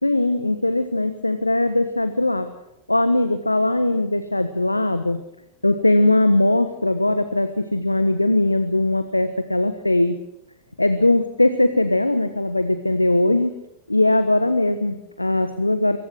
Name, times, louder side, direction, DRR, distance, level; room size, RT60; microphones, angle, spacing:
voice 1, 0.0-2.5 2.9-5.2 5.6-10.2 10.8-13.5 13.9-16.0, left 2 dB, 85° left, 11 dB, 1.3 m, -20 dB
25.0 x 25.0 x 6.5 m, 0.81 s
figure-of-eight pair, 90°, 0 cm